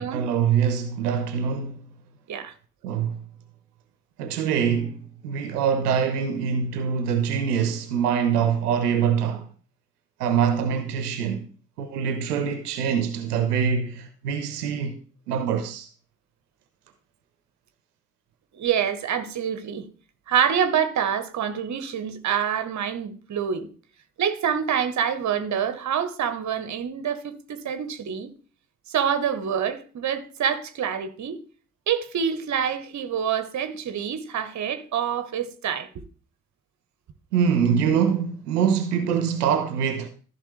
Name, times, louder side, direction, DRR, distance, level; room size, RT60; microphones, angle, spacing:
voice 1, 0.0-1.8 2.8-3.2 4.2-9.5 10.2-11.5 11.8-15.0 15.3-15.9 37.3-40.1, right 7 dB, 75° right, 0.8 m, -24 dB
voice 2, 18.5-19.9 20.3-23.7 24.2-28.3 28.9-31.4 31.9-35.9, right 8 dB, 35° right, 1.1 m, -26 dB
13.5 x 5.5 x 3.2 m
figure-of-eight pair, 45°, 47 cm